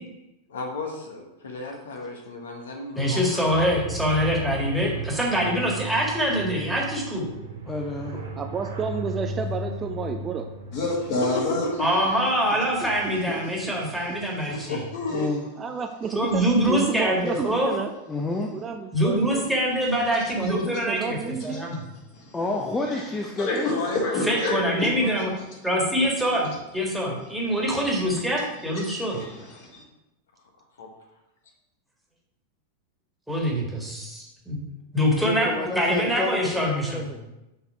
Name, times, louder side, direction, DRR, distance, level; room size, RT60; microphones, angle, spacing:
voice 1, 0.5-3.6 11.2-12.1 13.3-13.4 14.5-15.3 23.6-25.3 30.8-30.9, left 3 dB, 65° left, 2 dB, 1.0 m, -33 dB
voice 2, 3.0-7.3 11.8-14.8 16.1-17.7 18.9-21.8 24.3-25.3 25.6-29.2 33.3-34.6 34.9-37.1, equal, ahead, -3 dB, 1.7 m, -24 dB
sound 1, 3.4-14.4, right 1 dB, 75° right, 1.2 m, -37 dB
voice 3, 7.7-8.2 15.1-15.5 18.1-18.5 22.3-23.7 35.2-37.2, left 2 dB, 15° left, 0 dB, 0.7 m, -29 dB
voice 4, 8.4-10.5 12.8-12.9 14.0-14.1 15.6-17.9 18.5-19.5 20.4-21.7, right 6 dB, 25° right, 5 dB, 0.5 m, -31 dB
voice 5, 10.7-11.6 22.1-22.3 23.4-24.9 28.8-28.9 29.2-29.8, left 2 dB, 45° left, -2 dB, 2.1 m, -27 dB
6.7 x 4.1 x 4.5 m, 0.94 s
figure-of-eight pair, 90°, 0 cm